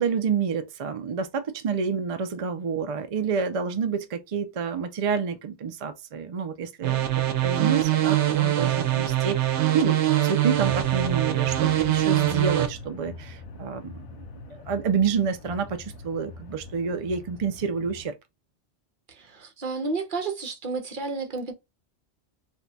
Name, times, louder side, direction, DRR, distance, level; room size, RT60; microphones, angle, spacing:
voice 1, 0.0-10.0 10.2-14.2 14.5-18.1, right 6 dB, 65° right, 0.3 m, -28 dB
sound 1, 6.8-12.7, right 13 dB, 85° right, 0.9 m, -23 dB
sound 2, 10.5-18.1, left 4 dB, 80° left, 0.9 m, -43 dB
voice 2, 19.1-21.5, right 3 dB, 50° right, 0.9 m, -31 dB
2.7 x 2.2 x 3.8 m
omnidirectional pair, 1.2 m